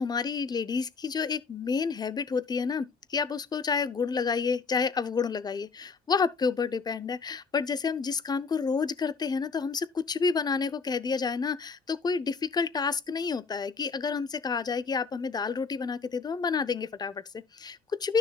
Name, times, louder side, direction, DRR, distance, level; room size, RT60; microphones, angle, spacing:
voice 1, 0.0-18.2, left 5 dB, 25° left, 0.6 m, -29 dB
12.5 x 6.3 x 2.3 m
cardioid pair, 110°, 17 cm